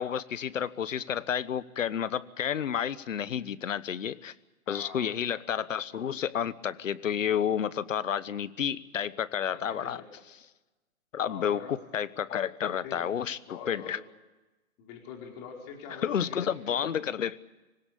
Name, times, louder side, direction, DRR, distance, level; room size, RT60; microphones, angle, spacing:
voice 1, 0.0-4.3 4.7-10.0 11.1-13.4 13.7-14.0 16.0-17.4, left 8 dB, 65° left, 16 dB, 1.2 m, -30 dB
voice 2, 4.7-5.1 9.5-10.0 11.3-11.7 12.8-13.1 13.5-13.9 14.8-16.5, left 6 dB, 25° left, 1 dB, 4.7 m, -44 dB
25.5 x 17.0 x 8.5 m, 1.1 s
hypercardioid pair, 145°, 42 cm